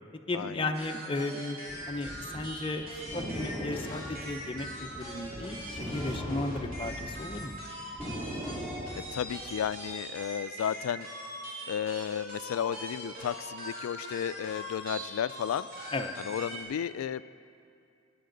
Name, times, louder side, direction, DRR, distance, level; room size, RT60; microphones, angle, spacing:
voice 1, 0.3-1.6 1.9-2.9 3.1-7.6 15.9-16.1, left 2 dB, 25° left, 5 dB, 0.6 m, -35 dB
sound 1, 0.7-16.6, equal, 45° right, 3.1 m, -42 dB
sound 2, 1.7-7.4 7.7-9.7, equal, 10° right, 2.6 m, -39 dB
voice 2, 9.1-11.1 11.7-15.7 16.2-17.2, left 8 dB, 90° left, 17 dB, 0.3 m, -33 dB
19.5 x 10.0 x 3.9 m, 2.5 s
head